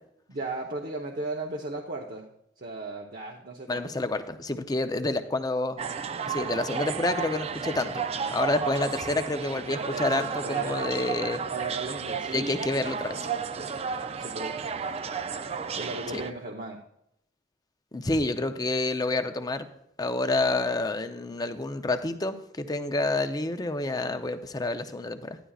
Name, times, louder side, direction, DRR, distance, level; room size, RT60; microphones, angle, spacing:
voice 1, 0.3-2.3 2.6-3.9 9.7-10.9 11.5-12.6 13.6-14.7 15.8-16.8, right 2 dB, 55° right, 0 dB, 0.8 m, -36 dB
voice 2, 3.7-5.8 6.3-11.4 12.3-13.2 16.1-16.2 17.9-19.7 20.0-25.4, left 2 dB, 20° left, 8 dB, 0.6 m, -28 dB
sound 1, 5.8-16.3, right 6 dB, 35° right, 0.4 m, -33 dB
12.5 x 10.0 x 2.4 m, 0.79 s
head